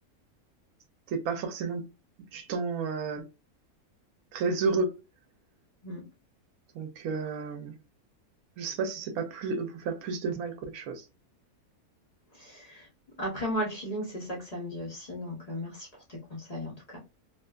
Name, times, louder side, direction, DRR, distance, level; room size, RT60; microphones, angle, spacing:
voice 1, 1.1-1.8 2.3-3.2 4.3-5.0 6.7-7.7 8.6-11.1, right 4 dB, 80° right, 1.0 m, -31 dB
voice 2, 12.4-12.9 13.2-17.0, equal, 45° left, 0.5 m, -36 dB
2.5 x 2.4 x 2.2 m
omnidirectional pair, 1.6 m